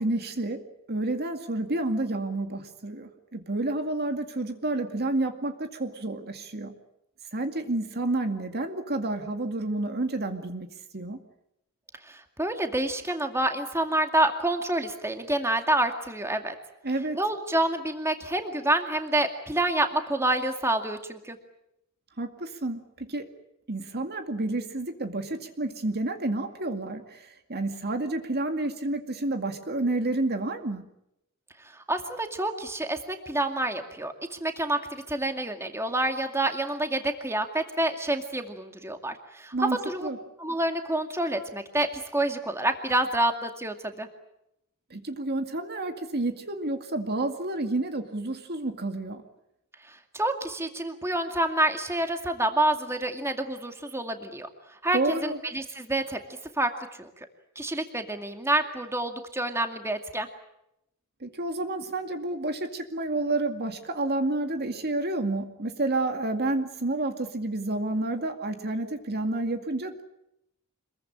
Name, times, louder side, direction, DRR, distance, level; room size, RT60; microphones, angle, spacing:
voice 1, 0.0-6.7 7.3-11.2 16.8-17.2 22.2-23.3 23.7-30.9 39.5-40.2 44.9-49.2 54.9-55.4 61.2-70.0, right 2 dB, 45° right, 6 dB, 2.2 m, -30 dB
voice 2, 12.0-16.6 17.1-21.4 31.6-39.5 39.8-40.1 40.4-44.1 49.8-56.2 56.6-56.7 57.0-57.3 57.6-60.3, right 1 dB, 10° right, 5 dB, 2.3 m, -28 dB
26.5 x 22.0 x 8.8 m, 0.83 s
head